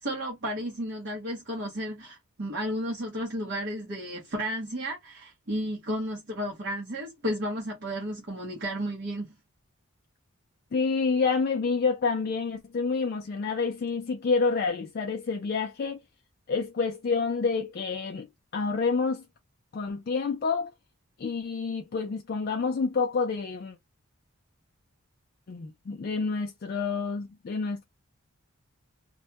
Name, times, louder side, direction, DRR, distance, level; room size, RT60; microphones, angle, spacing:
voice 1, 0.0-9.3, equal, 50° right, 0.7 m, -33 dB
voice 2, 10.7-16.0 16.5-18.3 18.5-19.3 19.7-20.7 21.2-23.8 25.5-27.8, left 4 dB, 45° left, 0.3 m, -28 dB
2.2 x 2.1 x 2.7 m
head